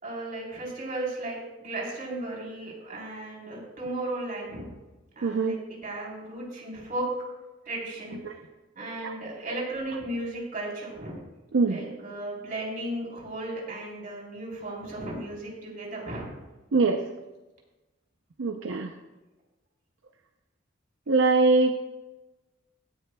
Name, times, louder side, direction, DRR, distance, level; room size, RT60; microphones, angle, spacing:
voice 1, 0.0-4.7 5.2-7.1 7.7-8.2 8.8-11.2 11.7-16.3, right 1 dB, 45° right, -2 dB, 3.5 m, -35 dB
voice 2, 5.2-5.5 8.2-8.3 9.0-9.1 11.5-11.8 16.7-17.0 18.4-18.9 21.1-21.9, right 3 dB, 75° right, 5 dB, 0.6 m, -23 dB
17.0 x 10.0 x 2.2 m, 1.1 s
head